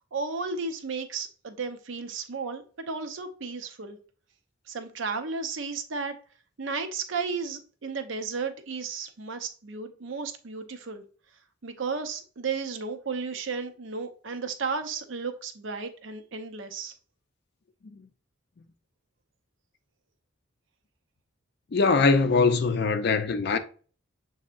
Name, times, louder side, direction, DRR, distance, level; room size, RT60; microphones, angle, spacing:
voice 1, 0.1-4.0 4.7-6.2 6.6-11.0 11.6-16.9, right 4 dB, 70° right, 0.6 m, -34 dB
voice 2, 21.7-23.6, left 4 dB, 55° left, 0.4 m, -22 dB
7.0 x 2.8 x 2.5 m
head